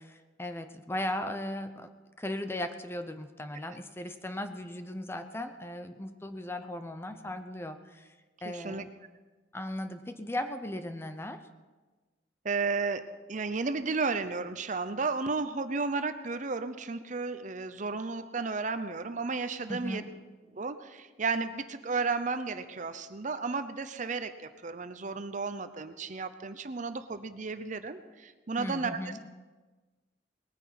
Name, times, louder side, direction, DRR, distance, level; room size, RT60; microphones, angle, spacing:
voice 1, 0.0-1.9 2.2-8.1 8.4-8.9 9.5-11.4 19.7-20.0 28.6-29.2, left 1 dB, 15° left, 8 dB, 0.7 m, -37 dB
voice 2, 8.5-8.8 12.4-13.0 13.3-20.0 20.5-29.2, right 4 dB, 45° right, 10 dB, 0.7 m, -33 dB
19.5 x 9.6 x 5.9 m, 1.3 s
head